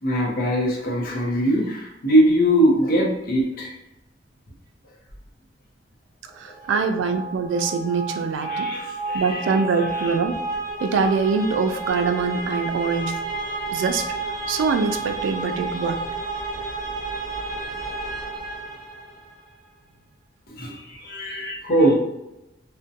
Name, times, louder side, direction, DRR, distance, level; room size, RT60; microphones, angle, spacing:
voice 1, 0.0-3.7 6.7-6.9 8.4-10.1 20.6-22.0, right 1 dB, 50° left, -1 dB, 0.6 m, -22 dB
voice 2, 6.4-8.7 9.1-10.4 10.8-13.2 13.7-14.0 14.5-16.0, right 5 dB, 80° right, 7 dB, 0.3 m, -23 dB
sound 1, 6.5-19.3, right 3 dB, 25° right, 0.7 m, -31 dB
2.6 x 2.1 x 2.5 m, 0.93 s
head